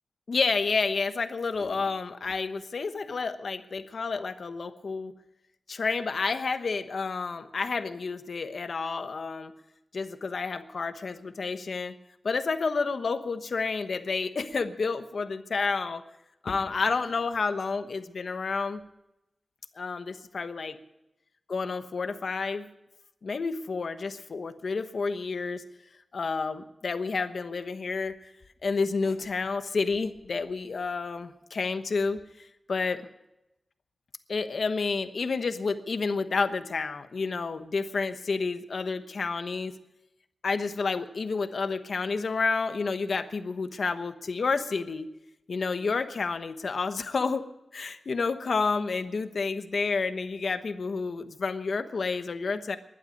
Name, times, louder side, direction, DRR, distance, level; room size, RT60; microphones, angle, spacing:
voice 1, 0.3-5.1 5.7-9.5 9.9-11.9 12.2-16.0 16.4-18.8 19.8-20.8 21.5-22.7 23.2-25.6 26.1-28.2 28.6-32.2 32.7-33.1 34.3-39.7 40.4-45.1 45.5-47.4 47.7-52.8, left 4 dB, 70° left, 9 dB, 1.1 m, -30 dB
20.0 x 11.5 x 5.2 m, 0.89 s
wide cardioid pair, 115°, 0 cm